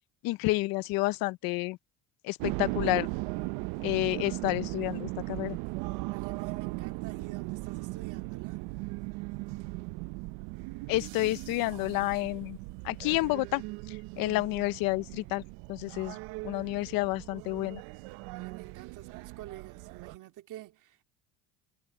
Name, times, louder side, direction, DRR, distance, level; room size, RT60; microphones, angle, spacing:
voice 1, 0.2-1.8 2.2-3.1 3.8-5.6 10.9-12.6 12.8-13.6 13.9-15.4 15.7-16.2 16.4-17.8, left 21 dB, 65° left, 0.7 m, -30 dB
sound 1, 2.4-20.2, right 23 dB, 80° right, 0.7 m, -38 dB
voice 2, 6.1-8.6 18.4-21.0, right 15 dB, 55° right, 2.7 m, -48 dB
cardioid pair, 135°, 37 cm